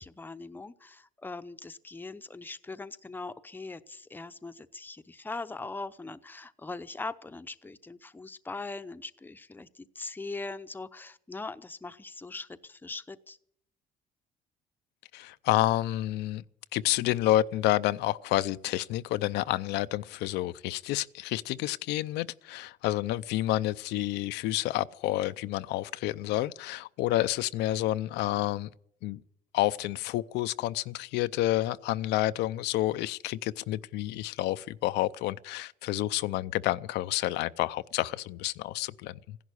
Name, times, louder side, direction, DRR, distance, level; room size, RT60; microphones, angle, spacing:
voice 1, 0.0-13.4, left 3 dB, 10° left, 0.7 m, -41 dB
voice 2, 15.1-16.4 16.7-28.7 29.0-29.2 29.5-39.4, left 15 dB, 85° left, 0.5 m, -29 dB
15.5 x 11.0 x 8.2 m
cardioid pair, 110°, 17 cm